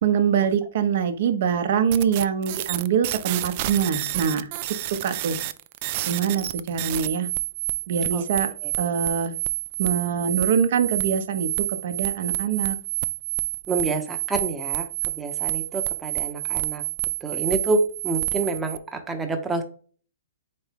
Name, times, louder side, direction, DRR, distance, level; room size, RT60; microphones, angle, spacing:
voice 1, 0.0-4.5 5.0-5.4 6.1-7.3 7.9-8.5 8.8-9.4 9.8-11.5 11.8-12.8, right 7 dB, 55° right, 9 dB, 0.8 m, -24 dB
sound 1, 1.9-18.8, right 17 dB, 40° right, 0.3 m, -29 dB
voice 2, 13.7-14.9 15.2-16.8 17.2-19.6, right 3 dB, 10° right, 5 dB, 0.8 m, -27 dB
4.3 x 3.6 x 3.4 m, 0.41 s
hypercardioid pair, 145°, 0 cm